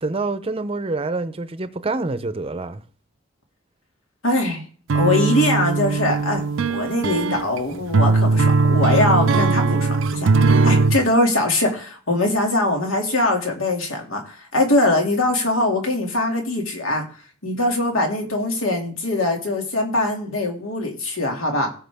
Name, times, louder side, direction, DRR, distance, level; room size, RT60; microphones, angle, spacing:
voice 1, 0.0-2.8, right 3 dB, 30° right, 0.7 m, -26 dB
voice 2, 4.2-4.6 4.9-6.4 6.7-10.3 10.6-17.0 17.4-21.7, left 1 dB, 80° left, 2.5 m, -22 dB
sound 1, 4.9-11.0, right 3 dB, 70° right, 0.5 m, -19 dB
17.0 x 5.9 x 3.5 m
head